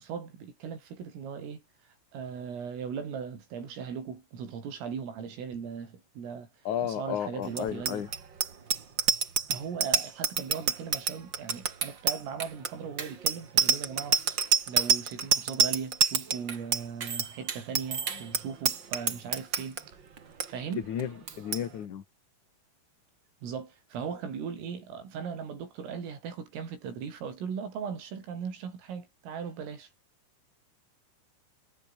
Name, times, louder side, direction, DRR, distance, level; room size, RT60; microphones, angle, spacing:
voice 1, 0.0-1.6 2.1-6.5 6.8-8.0 9.5-14.2 14.7-20.0 20.5-20.8 23.4-29.9, right 6 dB, 80° right, 8.2 m, -38 dB
voice 2, 6.6-8.1 18.1-18.2 20.8-22.0, left 9 dB, 50° left, 2.9 m, -33 dB
Bicycle bell, 7.5-19.8 20.2-20.5 20.7-21.0 21.3-21.6, right 6 dB, 55° right, 1.2 m, -27 dB
omnidirectional pair, 5.8 m